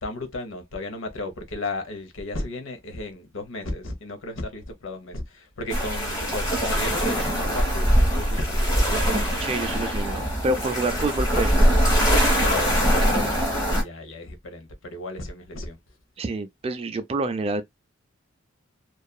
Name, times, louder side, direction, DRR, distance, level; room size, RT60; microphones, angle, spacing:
voice 1, 0.0-8.6 12.4-13.4 13.7-15.8, left 2 dB, 80° left, 0.8 m, -34 dB
sound 1, 5.7-13.8, equal, 20° left, 1.4 m, -22 dB
voice 2, 8.9-11.5 16.2-17.6, right 2 dB, 30° right, 0.3 m, -28 dB
2.7 x 2.3 x 2.2 m
head